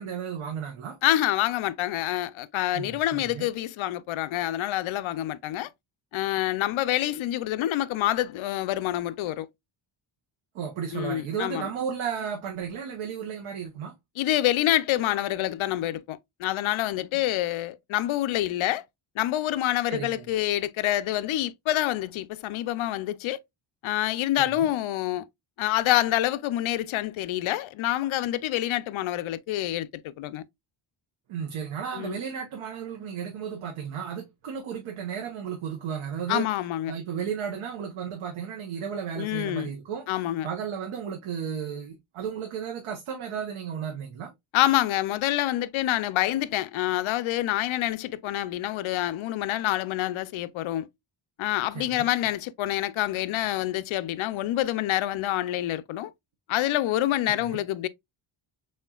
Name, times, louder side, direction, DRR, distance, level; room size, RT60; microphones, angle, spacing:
voice 1, 0.0-1.0 2.7-3.5 10.5-13.9 17.1-17.2 19.9-20.3 24.4-24.7 31.3-36.6 36.9-44.3 51.7-52.1 57.3-57.6, right 7 dB, 80° right, 1.1 m, -34 dB
voice 2, 1.0-5.7 6.1-9.5 10.9-11.7 14.2-18.8 19.2-23.4 23.8-25.3 25.6-30.4 31.9-32.2 36.3-36.9 39.2-39.7 40.1-40.5 44.5-50.9 51.4-56.1 56.5-57.9, left 14 dB, 75° left, 0.5 m, -27 dB
4.3 x 3.7 x 2.3 m
wide cardioid pair, 160°, 49 cm